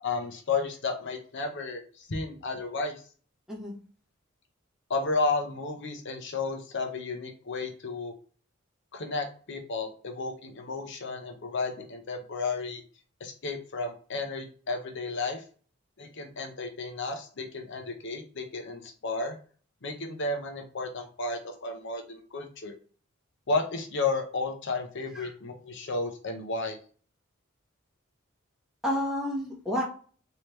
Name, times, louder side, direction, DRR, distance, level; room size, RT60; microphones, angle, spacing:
voice 1, 0.0-3.0 4.9-8.1 8.9-12.8 13.2-15.4 16.0-19.4 19.8-22.7 23.5-26.8, left 3 dB, 60° left, 3 dB, 0.7 m, -32 dB
voice 2, 28.8-29.8, equal, ahead, -4 dB, 1.1 m, -30 dB
3.2 x 2.8 x 3.1 m, 0.41 s
head